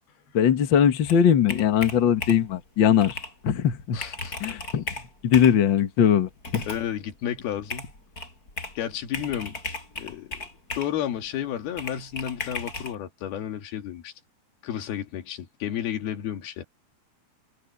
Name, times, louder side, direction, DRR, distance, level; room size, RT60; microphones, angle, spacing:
voice 1, 0.3-3.1 3.4-4.0 4.4-4.8 5.2-6.6, left 8 dB, 50° left, 1.5 m, -20 dB
Computer keyboard, 1.0-2.5 3.0-3.3 3.7-3.8 4.0-5.6 6.4-6.9 7.7-8.8 9.1-11.0 11.8-12.9, left 3 dB, 20° left, 7.4 m, -36 dB
voice 2, 3.9-4.3 6.7-7.9 8.8-9.5 10.0-10.5 10.8-14.1 14.6-16.6, left 10 dB, 85° left, 4.0 m, -32 dB
omnidirectional pair, 4.3 m